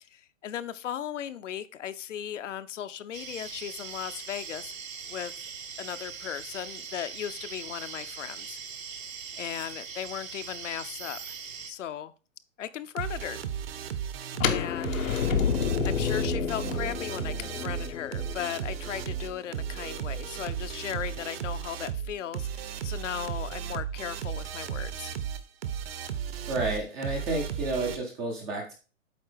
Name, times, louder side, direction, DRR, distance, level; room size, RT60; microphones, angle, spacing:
voice 1, 0.1-4.8 5.1-5.3 5.8-8.6 9.4-11.2 11.7-12.1 12.6-13.4 14.5-15.6 15.9-25.1, left 10 dB, 65° left, 0.8 m, -37 dB
sound 1, 3.1-11.7, right 6 dB, 80° right, 1.7 m, -41 dB
sound 2, 13.0-28.0, right 9 dB, 50° right, 0.9 m, -35 dB
sound 3, 14.3-20.2, left 7 dB, 85° left, 1.2 m, -30 dB
voice 2, 26.5-28.7, right 2 dB, 10° right, 0.4 m, -31 dB
8.5 x 3.7 x 4.9 m
hypercardioid pair, 145°, 39 cm